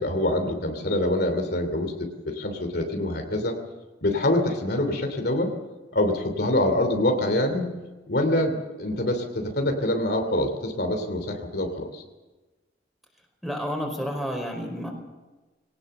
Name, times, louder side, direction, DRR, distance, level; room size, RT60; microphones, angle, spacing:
voice 1, 0.0-3.5 4.0-5.5 5.9-7.7 8.1-12.0, left 1 dB, 60° left, 4 dB, 2.9 m, -25 dB
voice 2, 13.4-14.9, equal, ahead, 2 dB, 4.7 m, -30 dB
21.5 x 18.5 x 6.9 m, 1.2 s
head